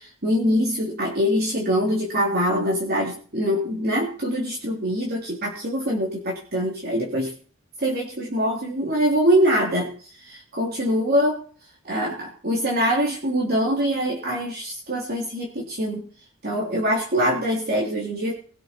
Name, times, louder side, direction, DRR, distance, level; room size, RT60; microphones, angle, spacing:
voice 1, 0.0-7.3 7.8-9.9 10.2-11.4 11.8-16.0 16.4-18.4, equal, 50° right, -2 dB, 3.1 m, -24 dB
20.5 x 7.1 x 4.4 m, 0.41 s
head